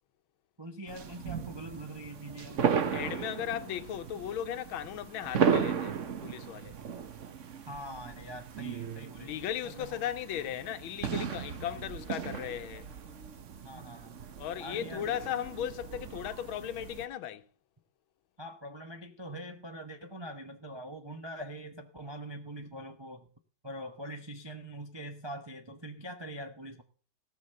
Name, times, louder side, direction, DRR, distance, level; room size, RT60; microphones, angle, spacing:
voice 1, 0.6-3.1 7.7-9.3 9.6-10.0 13.6-14.2 14.6-15.2 18.4-23.3 23.6-26.8, right 1 dB, 25° right, 0.5 m, -43 dB
sound 1, 0.9-17.1, right 7 dB, 45° right, 1.1 m, -35 dB
voice 2, 2.9-6.8 9.2-12.9 14.4-17.5, left 10 dB, 80° left, 1.6 m, -36 dB
17.5 x 6.2 x 6.5 m
omnidirectional pair, 2.2 m